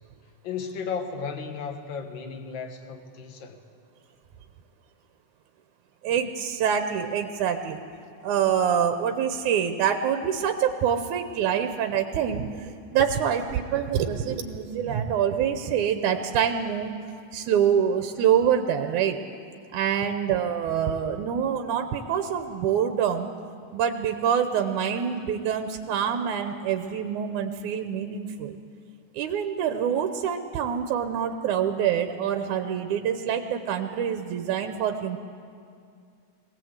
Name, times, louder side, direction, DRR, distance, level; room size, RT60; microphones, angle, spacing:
voice 1, 0.4-3.6, left 5 dB, 50° left, 5 dB, 1.7 m, -34 dB
voice 2, 6.0-7.8 8.2-17.0 17.3-19.2 19.7-23.3 23.7-28.6 29.1-35.2, right 8 dB, 80° right, 7 dB, 2.3 m, -26 dB
22.0 x 18.5 x 8.0 m, 2.3 s
omnidirectional pair, 3.5 m